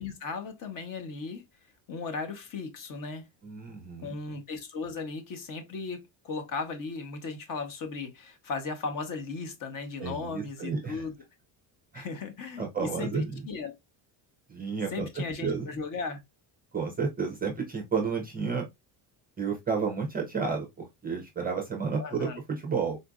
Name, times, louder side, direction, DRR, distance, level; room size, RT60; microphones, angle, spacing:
voice 1, 0.0-1.4 1.9-3.3 4.0-11.1 11.9-13.7 14.9-16.2 22.0-22.4, left 4 dB, 45° left, 0.8 m, -36 dB
voice 2, 3.4-4.2 10.0-11.0 11.9-12.1 12.6-13.4 14.5-15.7 16.7-18.6 19.4-23.0, right 5 dB, 20° right, 0.5 m, -31 dB
3.9 x 2.5 x 2.2 m
cardioid pair, 155°, 48 cm